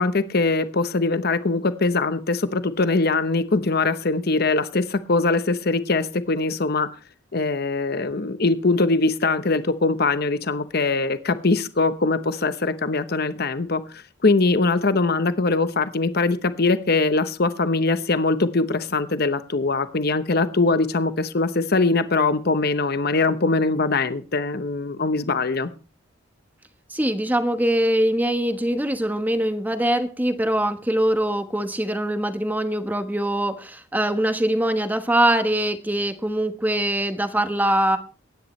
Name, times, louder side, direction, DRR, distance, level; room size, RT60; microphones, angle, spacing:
voice 1, 0.0-6.9 7.3-25.7, left 3 dB, 50° left, 12 dB, 1.0 m, -22 dB
voice 2, 26.9-38.0, right 1 dB, 10° right, 8 dB, 1.2 m, -23 dB
24.0 x 10.0 x 3.2 m, 0.35 s
head